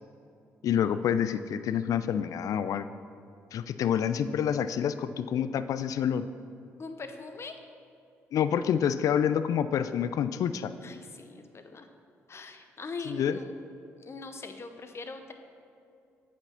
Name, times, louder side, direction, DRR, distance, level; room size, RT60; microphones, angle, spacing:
voice 1, 0.6-2.8 3.5-6.3 8.3-10.7 13.1-13.4, left 8 dB, 55° left, 13 dB, 0.3 m, -27 dB
voice 2, 6.8-7.6 10.8-11.9 12.3-13.5 14.0-15.3, left 3 dB, 40° left, 7 dB, 0.8 m, -41 dB
8.6 x 5.0 x 5.7 m, 2.5 s
hypercardioid pair, 45°, 7 cm